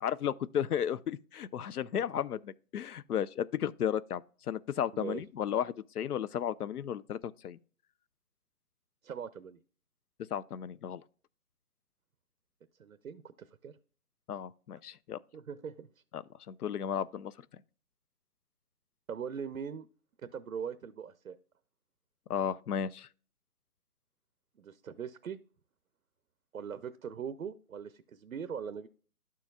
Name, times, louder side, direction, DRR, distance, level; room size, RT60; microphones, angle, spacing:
voice 1, 0.0-4.2 4.5-7.6 10.3-11.0 14.3-15.2 16.1-17.3 22.3-23.1, left 9 dB, 75° left, 0.6 m, -34 dB
voice 2, 4.9-5.2 9.0-9.6 12.8-13.8 15.3-15.9 19.1-19.9 20.2-21.4 24.6-25.4 26.5-28.9, right 7 dB, 65° right, 0.6 m, -41 dB
12.5 x 4.6 x 2.3 m
hypercardioid pair, 175°, 46 cm